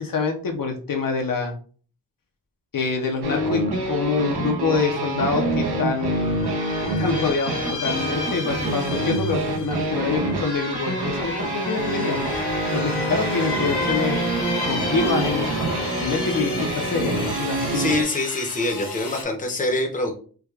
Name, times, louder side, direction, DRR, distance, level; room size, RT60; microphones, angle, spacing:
voice 1, 0.0-1.5 2.7-6.4 7.0-12.2 12.7-14.2 14.6-15.5 16.0-17.8, left 4 dB, 60° left, 2 dB, 0.6 m, -26 dB
sound 1, 3.2-18.0, right 2 dB, 85° right, 0.8 m, -26 dB
sound 2, 5.4-5.6 5.9-19.2, left 3 dB, 90° left, 0.9 m, -33 dB
voice 2, 17.7-20.1, left 2 dB, 20° left, 3 dB, 0.7 m, -25 dB
4.7 x 2.2 x 2.3 m, 0.42 s
wide cardioid pair, 115°, 38 cm